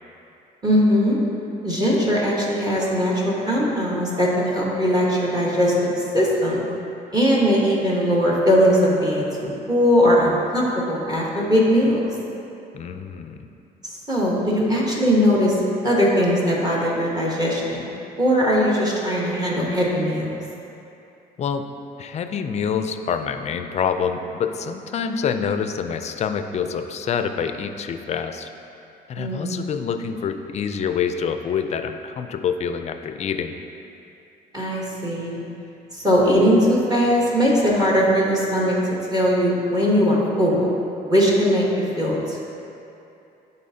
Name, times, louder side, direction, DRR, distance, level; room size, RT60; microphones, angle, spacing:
voice 1, 0.6-1.2 1.6-6.6 7.1-12.1 13.8-15.6 15.8-17.8 18.2-20.3 29.2-29.7 34.5-35.4 35.9-38.8 39.1-40.8 41.0-42.4, equal, 25° right, -5 dB, 1.2 m, -20 dB
voice 2, 12.7-13.4 21.4-21.6 22.0-28.5 29.1-33.6, left 7 dB, 40° left, 7 dB, 0.4 m, -26 dB
12.0 x 4.2 x 2.8 m, 2.8 s
cardioid pair, 110°, 17 cm